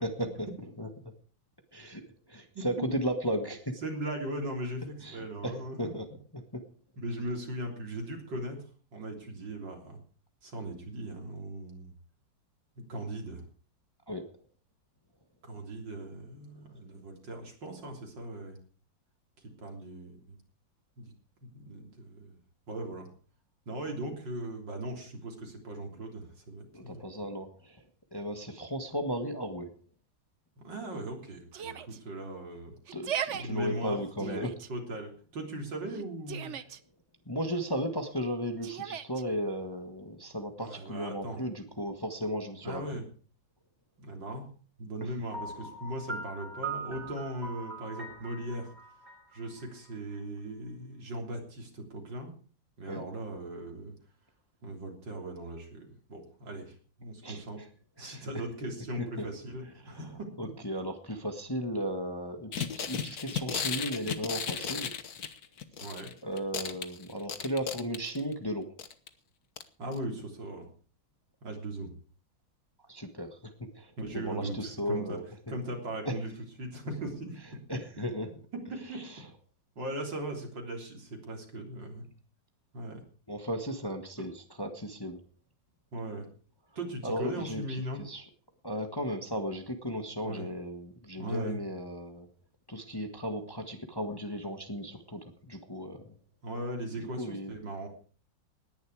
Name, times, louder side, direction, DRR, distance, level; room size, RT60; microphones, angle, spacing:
voice 1, 0.0-0.5 0.8-0.9 1.7-2.0 2.3-3.8 5.0-6.1 6.3-6.6 14.1-14.2 26.7-27.8 28.1-29.7 32.9-34.5 37.2-42.8 45.0-45.1 52.9-53.0 57.2-57.4 58.0-58.3 59.0-59.3 59.8-60.1 60.4-64.9 66.2-68.7 72.9-75.2 76.0-76.2 77.7-78.3 78.9-79.2 83.3-85.2 87.0-88.2 88.6-92.3 92.7-96.1 97.0-97.5, equal, 15° left, 6 dB, 1.5 m, -35 dB
voice 2, 3.8-5.8 7.0-8.6 8.9-10.0 10.4-11.9 12.9-13.4 15.4-18.6 19.4-20.4 21.0-21.1 21.4-22.4 22.7-23.1 23.7-27.0 30.6-32.8 33.3-36.5 40.6-41.5 42.6-43.0 44.0-44.5 44.8-48.7 49.3-52.3 52.8-53.9 54.6-57.6 58.0-60.3 65.8-66.1 69.8-70.7 71.4-71.9 74.0-75.2 75.5-76.3 76.6-77.3 78.7-79.0 79.8-82.0 82.7-83.0 85.9-86.3 86.8-88.0 90.2-90.5 91.2-91.6 96.4-97.9, right 1 dB, 70° right, 2 dB, 4.2 m, -38 dB
Yell, 31.5-32.0 32.9-33.4 34.2-34.7 35.9-36.8 38.6-39.2, right 9 dB, 50° right, 0.9 m, -37 dB
Piano, 45.3-50.2, right 3 dB, 25° right, 2.8 m, -41 dB
sound 1, 62.5-66.1 66.4-68.3 68.8-69.1 69.6-69.7 69.9-70.0, left 7 dB, 55° left, 1.6 m, -35 dB
19.0 x 11.0 x 4.8 m, 0.40 s
omnidirectional pair, 2.0 m